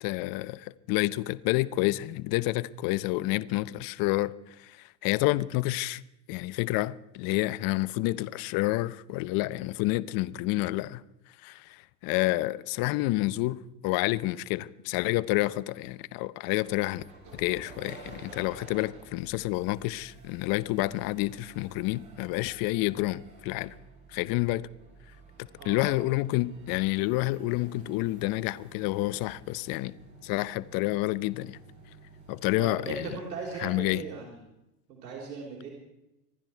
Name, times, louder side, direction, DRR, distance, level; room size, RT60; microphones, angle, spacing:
voice 1, 0.0-4.3 4.6-6.0 6.3-11.0 11.4-17.0 17.3-23.7 24.1-24.7 25.6-29.9 30.2-31.6 32.3-33.1 33.6-34.0, left 18 dB, 45° left, 0.7 m, -29 dB
sound 1, 16.6-33.9, right 3 dB, 35° right, 7.9 m, -52 dB
voice 2, 25.6-26.0 32.6-34.4 34.9-35.7, right 4 dB, 80° right, 3.8 m, -38 dB
26.5 x 11.0 x 4.5 m
hypercardioid pair, 105°, 50 cm